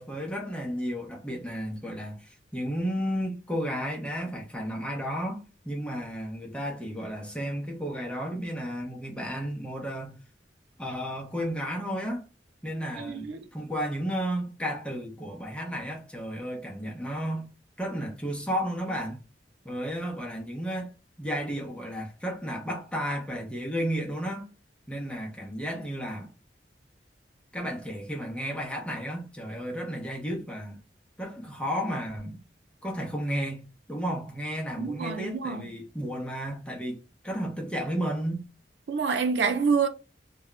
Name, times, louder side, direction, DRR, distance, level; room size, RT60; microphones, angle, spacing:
voice 1, 0.0-10.2 10.8-12.2 12.6-17.5 17.8-19.2 19.6-24.5 24.9-26.3 27.5-30.8 31.2-32.4 32.8-38.4, equal, 5° left, 0.6 m, -33 dB
voice 2, 13.0-13.4 34.8-35.6 38.9-39.9, right 5 dB, 85° right, 0.5 m, -27 dB
2.2 x 2.1 x 3.7 m
head